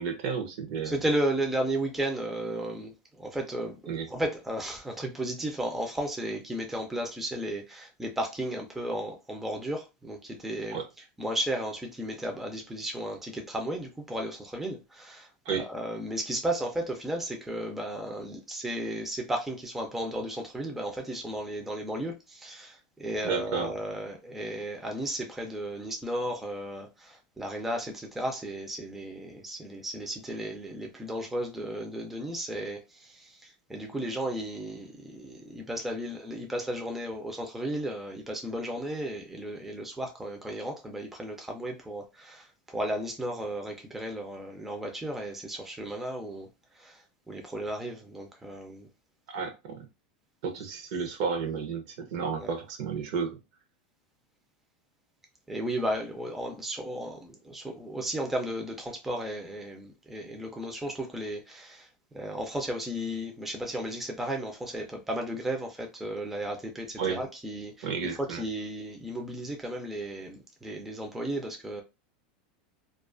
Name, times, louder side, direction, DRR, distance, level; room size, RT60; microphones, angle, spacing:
voice 1, 0.0-0.9 3.9-4.1 10.7-10.8 15.5-15.7 23.2-23.7 49.3-49.8 50.4-53.4 67.0-67.2 67.8-68.4, right 6 dB, 60° right, 0.6 m, -32 dB
voice 2, 0.8-3.8 4.1-46.5 46.7-48.9 52.4-52.5 55.5-61.9 62.1-71.8, right 1 dB, 5° right, 0.4 m, -34 dB
2.3 x 2.3 x 2.4 m
supercardioid pair, 150°, 5 cm